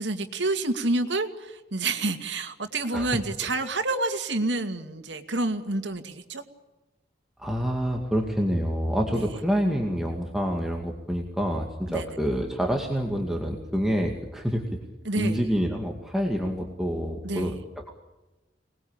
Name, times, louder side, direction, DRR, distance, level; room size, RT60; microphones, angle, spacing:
voice 1, 0.0-6.4 9.1-9.4 11.9-12.0 15.0-15.4 17.2-17.6, right 2 dB, 90° right, 7 dB, 2.4 m, -28 dB
voice 2, 7.4-14.6 15.2-17.5, equal, ahead, 0 dB, 2.2 m, -27 dB
26.0 x 20.5 x 8.9 m, 1.1 s
head